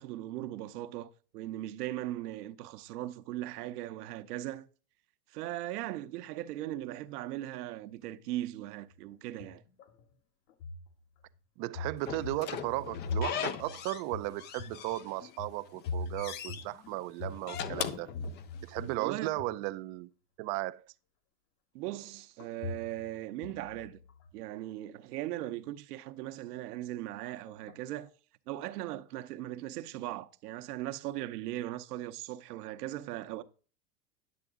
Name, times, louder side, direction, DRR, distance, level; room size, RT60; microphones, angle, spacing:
voice 1, 0.0-4.7 5.3-9.6 19.0-19.3 21.7-24.0 24.3-28.1 28.5-33.4, right 14 dB, 70° right, 0.9 m, -39 dB
sound 1, 8.9-10.1 10.5-11.4 11.7-19.0 19.2-19.7 22.4-23.1 23.4-24.4 27.5-27.8 28.0-28.1, left 2 dB, 60° left, 1.7 m, -41 dB
voice 2, 11.6-18.1 18.6-20.1 20.4-20.8, right 18 dB, 40° right, 0.5 m, -36 dB
Slam / Squeak, 12.1-14.1 14.4-15.4 15.7-16.6 17.3-18.8, left 9 dB, 25° left, 0.4 m, -39 dB
10.5 x 6.9 x 3.7 m
hypercardioid pair, 115°, 48 cm